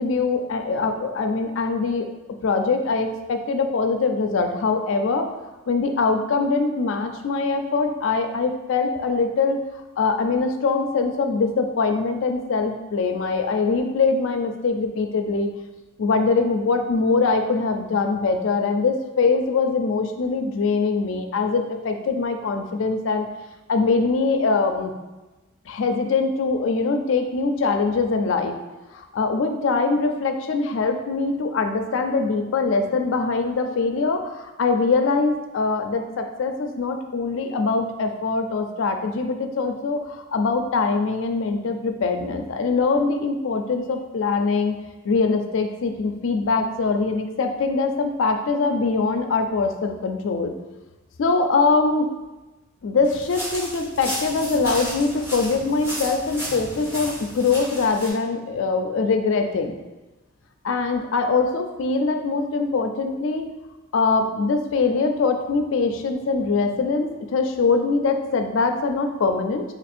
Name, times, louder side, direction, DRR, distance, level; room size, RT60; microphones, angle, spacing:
voice 1, 0.0-2.1 2.4-5.3 5.7-9.6 10.0-15.5 16.0-23.3 23.7-24.9 25.7-28.6 28.9-44.8 45.0-50.5 51.2-52.1 52.8-59.8 60.6-63.5 63.9-69.6, left 4 dB, 65° left, 6 dB, 0.4 m, -23 dB
sound 1, 53.0-58.1, equal, 10° right, 0.8 m, -33 dB
2.9 x 2.5 x 4.2 m, 1.1 s
head